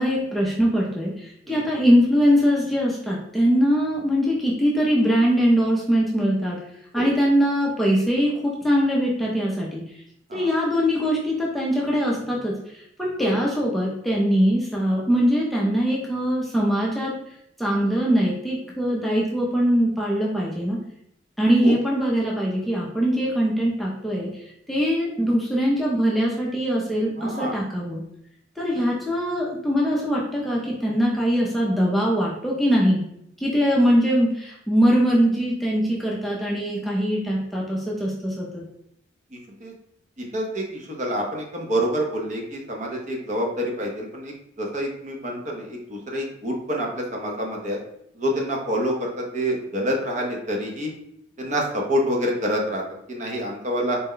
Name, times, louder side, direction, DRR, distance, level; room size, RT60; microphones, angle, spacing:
voice 1, 0.0-6.6 6.9-9.8 10.3-17.1 17.6-20.8 21.4-28.0 28.6-33.0 33.4-38.6, equal, ahead, -5 dB, 0.4 m, -22 dB
voice 2, 27.2-27.5 39.6-39.7 40.2-47.8 48.2-50.9 51.4-52.8 53.1-54.0, equal, 35° right, 0 dB, 0.7 m, -27 dB
4.0 x 2.2 x 3.7 m, 0.77 s
head